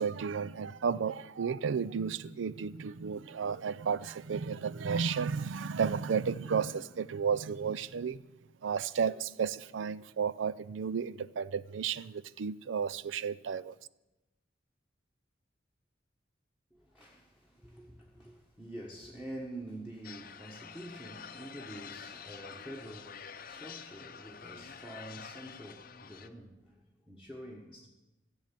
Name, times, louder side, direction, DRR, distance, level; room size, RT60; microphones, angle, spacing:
voice 1, 0.0-8.2 8.6-13.8, right 6 dB, 75° right, 0.4 m, -33 dB
voice 2, 16.7-27.9, right 1 dB, 5° right, 1.3 m, -47 dB
sound 1, 20.0-26.3, left 7 dB, 50° left, 0.7 m, -48 dB
14.5 x 7.8 x 7.5 m
head